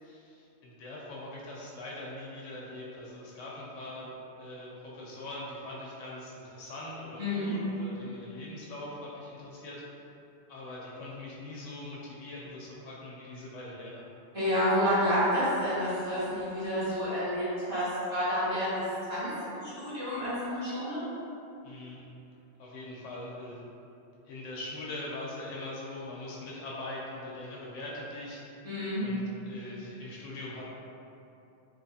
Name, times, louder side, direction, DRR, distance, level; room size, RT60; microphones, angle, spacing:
voice 1, 0.0-4.1 4.4-9.8 10.5-14.0 21.6-22.0 22.6-23.6 24.3-28.4 29.0-30.6, left 1 dB, 85° left, -5 dB, 1.0 m, -42 dB
voice 2, 7.2-7.5 14.3-21.0 28.6-29.0, equal, 25° right, -15 dB, 1.7 m, -29 dB
3.2 x 3.1 x 2.7 m, 2.8 s
omnidirectional pair, 1.2 m